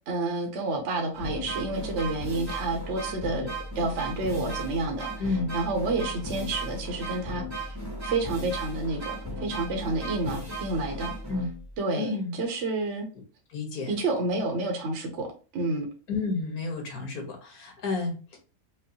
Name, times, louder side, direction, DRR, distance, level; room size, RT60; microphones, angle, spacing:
voice 1, 0.1-5.1 5.5-7.7 8.0-11.1 11.8-13.1 13.9-15.3 15.5-15.9, right 2 dB, 55° right, 1 dB, 1.0 m, -29 dB
sound 1, 1.1-11.8, right 1 dB, 15° right, 0.8 m, -36 dB
voice 2, 5.2-5.6 11.3-11.5 12.0-12.4 13.5-13.9 16.1-18.4, left 3 dB, 80° left, 2 dB, 1.6 m, -31 dB
5.2 x 2.0 x 2.8 m, 0.35 s
omnidirectional pair, 1.6 m